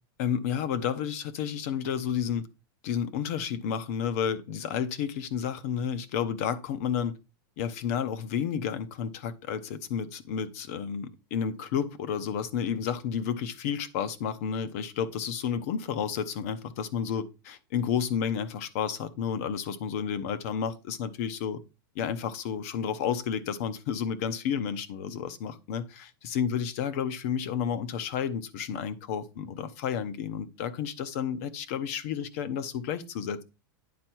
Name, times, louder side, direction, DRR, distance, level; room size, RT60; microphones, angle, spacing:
voice 1, 0.2-2.5 2.8-7.1 7.6-21.6 21.9-33.4, left 8 dB, 40° left, 0.7 m, -31 dB
9.4 x 4.5 x 4.5 m
supercardioid pair, 180°, 12 cm